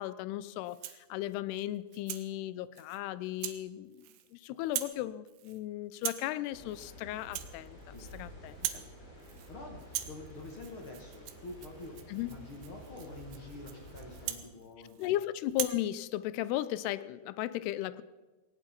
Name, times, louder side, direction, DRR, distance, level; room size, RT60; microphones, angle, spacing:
voice 1, 0.0-8.8 12.1-12.3 15.0-18.0, left 14 dB, 90° left, 16 dB, 2.7 m, -36 dB
Rattle (instrument), 0.6-1.1 1.6-2.3 2.8-3.0 3.4-3.6 3.9-4.3 4.6-5.0 5.3-5.6 6.0-6.3 6.7-6.9 7.2-8.2 8.5-8.9 9.2-9.5 9.8-15.1 15.5-15.8, right 13 dB, 80° right, 2.8 m, -41 dB
sound 1, 6.5-14.3, equal, 30° left, 4.6 m, -51 dB
voice 2, 9.5-12.0 12.3-15.1, left 2 dB, 50° left, 1 dB, 1.6 m, -47 dB
18.0 x 17.0 x 4.3 m, 1.2 s
omnidirectional pair, 4.6 m